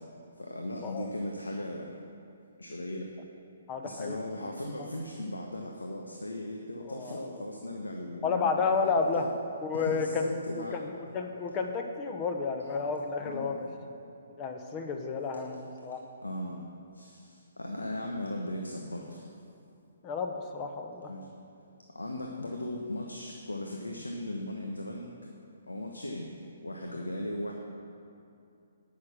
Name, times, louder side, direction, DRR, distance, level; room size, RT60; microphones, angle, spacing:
voice 1, 0.4-1.9 2.6-3.1 3.8-8.6 8.8-9.3 9.7-10.8 13.2-13.6 16.2-16.6 17.0-17.2 17.6-19.2 21.1-21.2 21.9-25.1 25.7-26.3 26.6-27.5, left 1 dB, 90° left, 0 dB, 1.0 m, -37 dB
voice 2, 3.7-4.5 6.9-7.2 8.2-9.2 9.6-10.3 10.5-13.7 14.4-16.0 20.0-21.1, left 5 dB, 25° left, 4 dB, 1.1 m, -31 dB
12.5 x 6.4 x 6.2 m, 2.6 s
figure-of-eight pair, 135°, 0 cm